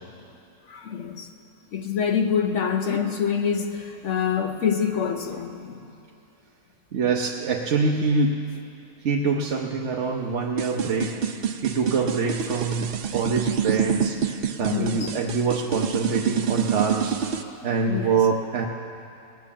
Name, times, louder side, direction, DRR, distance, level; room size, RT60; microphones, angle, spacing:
voice 1, 0.7-1.3 1.7-5.9 14.7-15.1 17.4-17.5 17.9-18.2, left 7 dB, 60° left, 6 dB, 0.9 m, -26 dB
voice 2, 6.9-8.4 9.0-11.2 11.6-17.2 17.6-18.7, right 4 dB, 55° right, 0 dB, 1.0 m, -25 dB
sound 1, 10.6-17.4, right 7 dB, 80° right, 0.5 m, -27 dB
18.5 x 9.2 x 7.2 m, 2.6 s
omnidirectional pair, 1.7 m